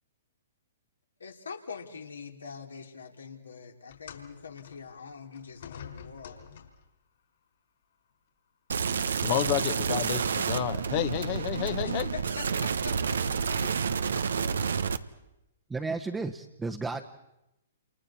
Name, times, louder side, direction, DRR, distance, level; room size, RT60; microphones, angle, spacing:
voice 1, 1.2-6.4 11.8-14.5, left 5 dB, 80° left, 3 dB, 3.2 m, -44 dB
sound 1, 3.9-7.0 7.9-8.1 9.0-9.1, left 8 dB, 60° left, 4.8 m, -48 dB
sound 2, 8.7-15.0, right 6 dB, 70° right, 1.0 m, -29 dB
voice 2, 9.2-12.1, left 14 dB, 40° left, 11 dB, 1.3 m, -30 dB
voice 3, 15.7-17.0, right 3 dB, 10° right, 3 dB, 1.2 m, -33 dB
29.0 x 29.0 x 4.3 m, 0.91 s
figure-of-eight pair, 120°, 0 cm